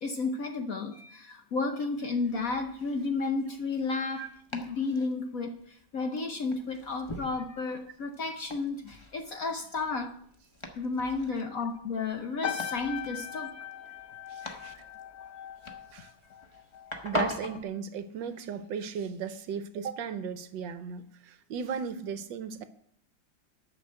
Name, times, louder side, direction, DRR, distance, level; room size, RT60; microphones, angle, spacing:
voice 1, 0.0-10.1 10.8-13.5 14.4-14.6, left 3 dB, 60° left, 1.0 m, -32 dB
Domestic sounds home sounds, 2.1-17.6, left 1 dB, 20° left, 0.8 m, -43 dB
sound 1, 12.4-17.0 17.3-17.7, left 9 dB, 80° left, 0.6 m, -39 dB
voice 2, 14.3-14.8 15.9-16.1 17.0-22.6, right 6 dB, 70° right, 1.4 m, -36 dB
10.5 x 6.1 x 7.6 m
omnidirectional pair, 2.2 m